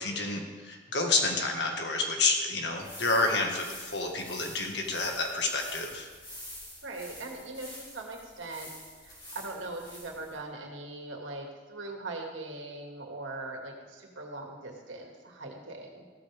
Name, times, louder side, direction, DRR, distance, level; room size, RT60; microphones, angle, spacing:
voice 1, 0.0-6.1, left 3 dB, 60° left, 2 dB, 1.9 m, -29 dB
sound 1, 2.6-10.4, left 1 dB, 25° left, 4.2 m, -47 dB
voice 2, 6.8-8.7 9.0-16.0, right 2 dB, 75° right, 1 dB, 2.4 m, -41 dB
15.5 x 13.5 x 3.7 m, 1.5 s
head